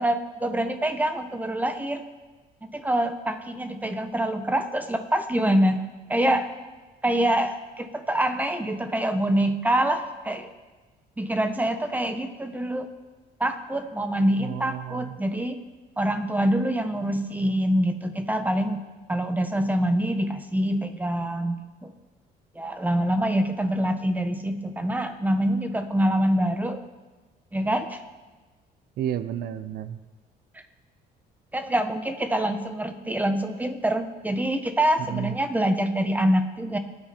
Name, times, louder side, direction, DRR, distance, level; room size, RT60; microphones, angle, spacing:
voice 1, 0.0-2.0 2.6-5.8 6.1-6.5 7.0-10.5 11.2-12.9 13.4-15.6 16.0-18.8 19.1-21.9 22.5-26.8 27.5-28.0 31.5-36.8, right 1 dB, 10° right, 8 dB, 1.4 m, -25 dB
voice 2, 14.4-15.2 29.0-30.0 35.0-35.4, right 11 dB, 70° right, 13 dB, 0.8 m, -31 dB
26.0 x 9.5 x 4.5 m, 1.3 s
cardioid pair, 110°, 17 cm